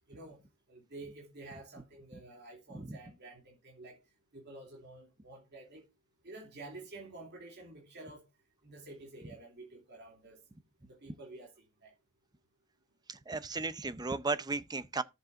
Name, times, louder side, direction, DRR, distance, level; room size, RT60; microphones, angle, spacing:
voice 1, 0.1-0.4 0.7-4.0 4.3-5.8 6.2-8.2 8.6-10.4 10.8-11.9, right 2 dB, 55° right, 2.8 m, -50 dB
voice 2, 13.1-15.0, right 3 dB, 20° right, 0.6 m, -35 dB
13.5 x 7.5 x 2.5 m
head